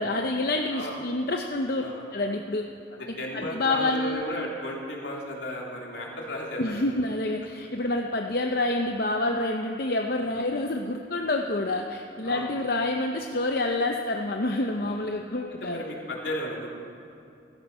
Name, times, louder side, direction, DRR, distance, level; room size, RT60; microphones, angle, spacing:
voice 1, 0.0-1.8 2.1-2.6 3.3-4.2 6.6-15.8, left 2 dB, 55° left, 2 dB, 0.7 m, -27 dB
voice 2, 2.9-6.8 10.3-10.4 12.2-12.5 14.8-14.9 15.6-16.7, left 1 dB, 80° left, -2 dB, 3.1 m, -34 dB
16.5 x 13.5 x 5.5 m, 2.8 s
head